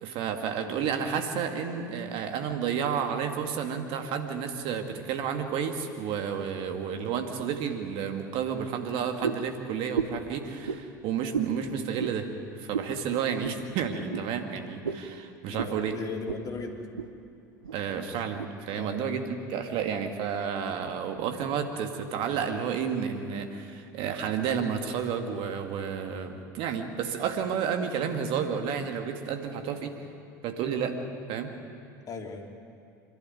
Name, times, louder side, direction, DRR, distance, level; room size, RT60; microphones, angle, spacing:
voice 1, 0.0-12.3 12.6-16.0 17.7-29.9 30.4-31.0 31.3-31.5, right 7 dB, 55° right, 6 dB, 2.2 m, -31 dB
sound 1, 9.2-9.5 9.9-10.3 10.6-10.8 11.3-11.5 12.0-12.2 12.7-12.9 13.4-13.6 14.1-14.3 14.8-15.1 15.6-15.8 16.3-16.4 16.8-17.1 17.6-17.8 18.4-18.5, right 6 dB, 85° right, 1.0 m, -32 dB
voice 2, 15.5-16.8 18.7-19.0 32.1-32.5, left 4 dB, 35° left, 2 dB, 2.9 m, -37 dB
26.0 x 11.5 x 9.4 m, 2.5 s
hypercardioid pair, 75°, 11 cm